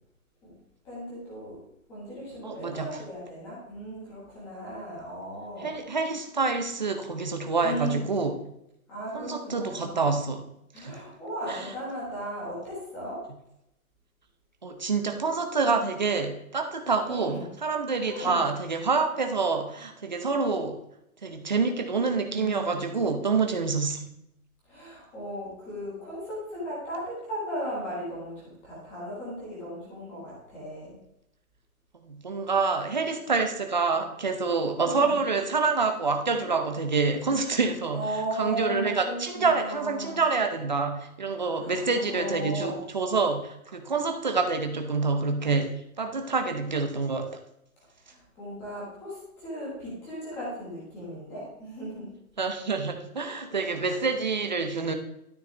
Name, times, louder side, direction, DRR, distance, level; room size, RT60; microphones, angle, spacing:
voice 1, 0.8-1.6 1.9-5.8 7.6-8.0 8.9-10.0 10.7-13.2 17.0-17.4 18.0-18.4 22.3-22.8 24.7-31.0 34.8-35.2 37.9-40.2 41.6-42.8 48.1-52.1 53.8-54.0, equal, 5° left, -7 dB, 1.5 m, -36 dB
voice 2, 2.4-2.9 5.6-8.4 9.1-10.4 10.8-11.0 11.5-11.7 14.6-20.8 21.2-24.1 32.0-47.3 52.4-54.9, right 4 dB, 30° right, 5 dB, 0.8 m, -27 dB
12.5 x 6.8 x 3.4 m, 0.81 s
hypercardioid pair, 180°, 44 cm